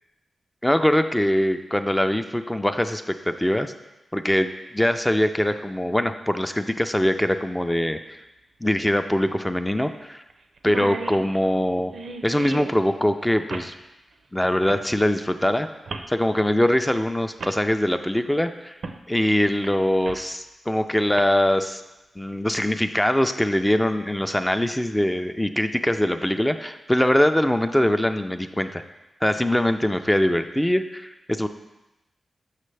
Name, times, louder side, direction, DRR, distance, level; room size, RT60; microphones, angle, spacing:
voice 1, 0.6-3.7 4.1-4.5 4.7-8.2 8.6-10.2 10.6-11.9 12.2-13.7 14.3-15.7 16.1-18.8 19.1-21.8 22.2-28.8 29.2-31.5, left 1 dB, 10° left, 8 dB, 0.3 m, -22 dB
sound 1, 6.9-7.0 8.7-8.8 9.2-9.3 9.8-10.0 10.3-10.4 10.6-12.8 13.5-13.7 14.6-14.9 15.9-16.1 16.9-17.0 17.4-17.6 18.8-19.0 19.4-20.4 21.0-21.2, right 3 dB, 75° right, 0.4 m, -34 dB
6.5 x 6.0 x 3.2 m, 1.0 s
wide cardioid pair, 100°, 0 cm